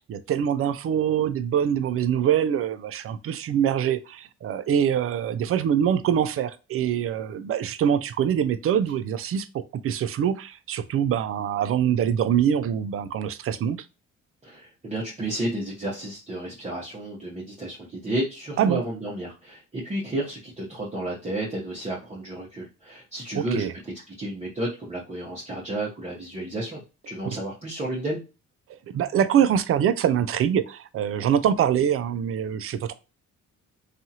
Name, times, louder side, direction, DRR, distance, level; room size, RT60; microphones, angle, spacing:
voice 1, 0.1-13.8 18.6-18.8 23.3-23.7 28.9-32.9, right 9 dB, 50° right, 12 dB, 0.4 m, -24 dB
voice 2, 14.4-23.7 24.2-26.8 27.1-28.2, right 1 dB, 25° right, -5 dB, 0.8 m, -32 dB
2.7 x 2.4 x 2.7 m, 0.30 s
cardioid pair, 90°, 30 cm